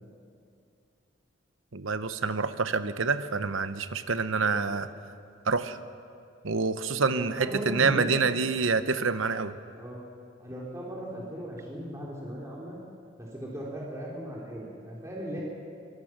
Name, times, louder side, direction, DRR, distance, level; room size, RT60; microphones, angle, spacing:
voice 1, 1.7-4.9 5.5-5.8 6.4-9.5, right 4 dB, 80° right, 11 dB, 0.9 m, -27 dB
voice 2, 7.1-8.3 9.7-10.0 10.4-12.8 13.2-15.4, equal, 15° right, -4 dB, 3.4 m, -37 dB
24.0 x 22.0 x 6.1 m, 2.4 s
head